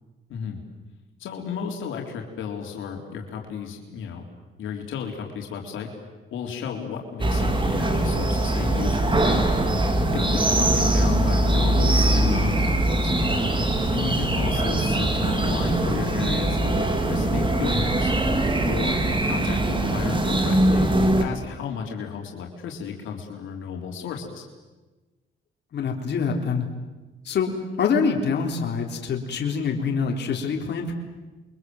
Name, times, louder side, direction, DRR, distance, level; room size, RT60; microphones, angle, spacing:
voice 1, 0.3-0.6 1.2-4.2 4.6-5.9 6.3-9.6 10.1-13.1 13.9-18.1 18.7-20.9 21.2-24.4, left 7 dB, 80° left, 1 dB, 3.7 m, -33 dB
sound 1, 7.2-21.2, right 1 dB, 25° right, 3.3 m, -22 dB
voice 2, 25.7-26.7 27.2-30.9, left 5 dB, 60° left, 1 dB, 3.8 m, -25 dB
28.0 x 24.0 x 7.9 m, 1.2 s
cardioid pair, 90°, 20 cm